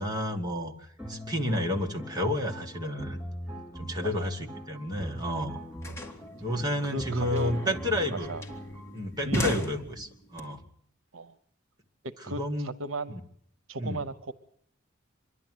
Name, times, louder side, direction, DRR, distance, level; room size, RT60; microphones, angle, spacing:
voice 1, 0.0-3.2 3.7-5.6 6.4-8.3 8.9-10.6 12.4-12.7 13.1-13.2 13.8-14.0, left 1 dB, 20° right, 2 dB, 1.7 m, -31 dB
sound 1, 1.0-8.9, equal, ahead, 4.1 m, -41 dB
sound 2, 4.9-5.0 5.2-10.4, equal, 15° left, 2.0 m, -37 dB
voice 2, 6.9-8.5 9.3-9.5 11.1-11.4 12.2-13.1 13.7-14.3, right 1 dB, 80° right, 13 dB, 1.0 m, -37 dB
25.5 x 11.0 x 9.4 m, 0.66 s
head